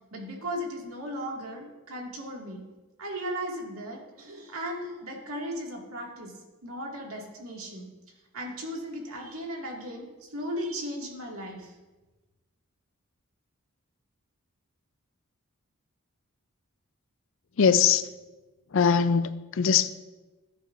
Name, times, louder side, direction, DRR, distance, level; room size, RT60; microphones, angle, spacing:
voice 1, 0.1-2.6 3.0-6.3 6.6-7.9 8.3-11.7, equal, 70° right, 2.1 m, -36 dB
voice 2, 17.6-18.1 18.7-19.9, left 6 dB, 60° left, 0.4 m, -22 dB
14.0 x 9.9 x 2.5 m
head